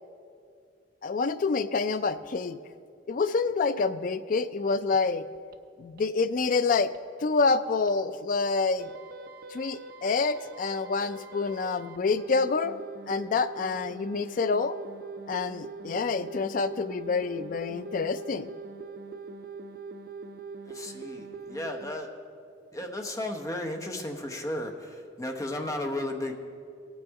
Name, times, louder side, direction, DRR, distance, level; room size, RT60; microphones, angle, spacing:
voice 1, 1.0-2.6 3.1-5.2 5.8-6.9 7.2-8.9 9.5-12.8 13.1-14.8 15.3-18.5, left 4 dB, 45° left, 13 dB, 0.4 m, -27 dB
sound 1, 5.5-5.6 6.0-6.1 6.4-6.5 6.9-7.0 7.4-7.5 7.9-8.0 8.3-8.4 8.8-21.9, right 3 dB, 50° right, 0.5 m, -42 dB
voice 2, 20.7-22.1 22.7-26.3, left 1 dB, 20° left, 3 dB, 0.8 m, -34 dB
17.5 x 6.2 x 4.6 m, 2.3 s
head